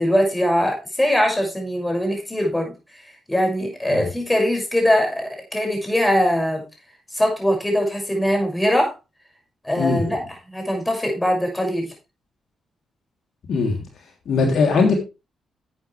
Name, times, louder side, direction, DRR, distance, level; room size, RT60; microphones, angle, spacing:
voice 1, 0.0-2.7 3.3-6.6 7.1-8.9 9.6-10.2 10.5-11.9, equal, 10° left, 2 dB, 6.4 m, -21 dB
voice 2, 14.2-14.9, left 4 dB, 65° left, 2 dB, 3.3 m, -19 dB
12.0 x 8.7 x 3.4 m, 0.27 s
cardioid pair, 70°, 0 cm